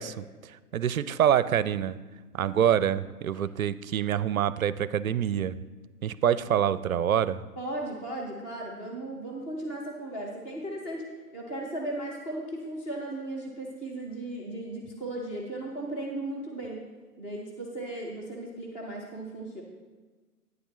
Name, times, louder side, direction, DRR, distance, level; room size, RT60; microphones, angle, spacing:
voice 1, 0.0-2.0 2.3-5.6 6.0-7.4, right 9 dB, 60° right, 17 dB, 0.5 m, -26 dB
voice 2, 7.6-16.8 17.2-19.6, right 1 dB, 10° left, -2 dB, 0.5 m, -36 dB
10.0 x 9.3 x 3.1 m, 1.4 s
figure-of-eight pair, 130°, 47 cm